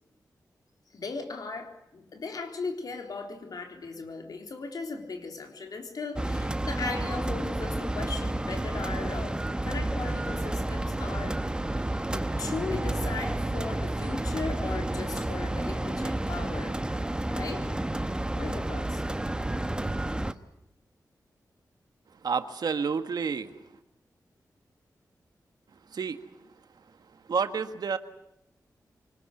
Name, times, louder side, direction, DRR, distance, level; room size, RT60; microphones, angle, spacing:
voice 1, 0.9-11.4 11.9-16.8 17.2-17.7 18.3-19.0, left 4 dB, 70° left, 4 dB, 3.8 m, -37 dB
sound 1, 6.2-20.3, right 1 dB, 15° right, 1.1 m, -30 dB
sound 2, 10.0-16.5, right 2 dB, 35° right, 2.3 m, -45 dB
voice 2, 22.2-23.5 25.9-26.3 27.3-28.0, right 5 dB, 75° right, 9 dB, 1.6 m, -29 dB
25.0 x 19.5 x 9.8 m, 0.83 s
cardioid pair, 75°, 7 cm